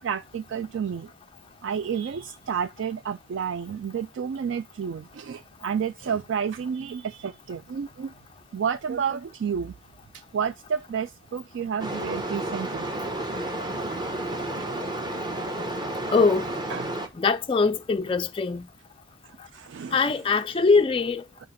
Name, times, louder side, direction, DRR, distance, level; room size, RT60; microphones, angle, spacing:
voice 1, 0.0-1.1 1.6-8.1 8.5-9.7 10.1-12.9 16.7-17.0 19.3-20.1 21.4-21.5, right 7 dB, 60° right, 0.3 m, -30 dB
sound 1, 11.8-17.1, right 1 dB, 20° right, 0.9 m, -31 dB
voice 2, 16.1-16.5 17.2-18.7 19.9-21.2, left 4 dB, 25° left, 0.3 m, -22 dB
4.9 x 4.8 x 5.7 m
head